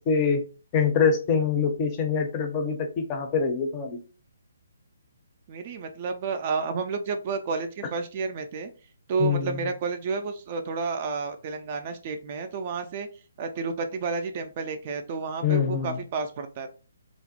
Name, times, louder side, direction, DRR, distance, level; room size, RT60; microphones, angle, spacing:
voice 1, 0.1-0.4 0.7-4.0 9.2-9.6 15.4-16.0, left 6 dB, 25° left, 5 dB, 0.5 m, -24 dB
voice 2, 5.5-8.7 9.1-13.1 13.4-16.7, right 4 dB, 35° right, 7 dB, 0.3 m, -31 dB
2.5 x 2.1 x 2.6 m, 0.35 s
figure-of-eight pair, 135°, 0 cm